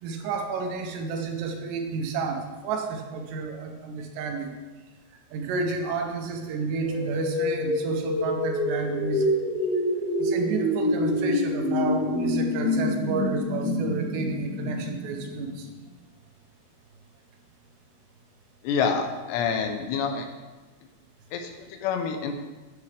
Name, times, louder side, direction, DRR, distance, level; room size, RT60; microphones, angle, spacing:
voice 1, 0.0-4.6 5.3-9.4 10.2-15.7, right 4 dB, 80° right, 3 dB, 2.9 m, -31 dB
sound 1, 6.8-15.7, left 1 dB, 60° left, 3.2 m, -27 dB
voice 2, 18.6-20.3 21.3-22.3, left 6 dB, 80° left, 5 dB, 2.7 m, -27 dB
9.6 x 7.0 x 3.3 m, 1.2 s
omnidirectional pair, 5.1 m